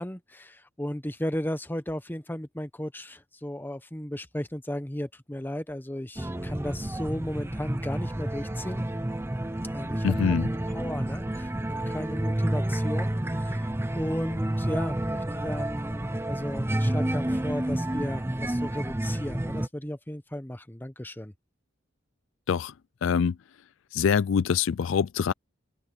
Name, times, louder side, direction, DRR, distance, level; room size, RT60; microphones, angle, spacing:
voice 1, 0.0-8.8 9.7-10.1 10.5-13.7 13.9-21.3, left 1 dB, 10° left, 1.0 m, -35 dB
sound 1, 6.2-19.7, right 1 dB, 10° right, 0.7 m, -30 dB
voice 2, 10.0-10.5 22.5-22.7 23.0-23.4 23.9-25.3, left 6 dB, 70° left, 0.4 m, -24 dB
open air
head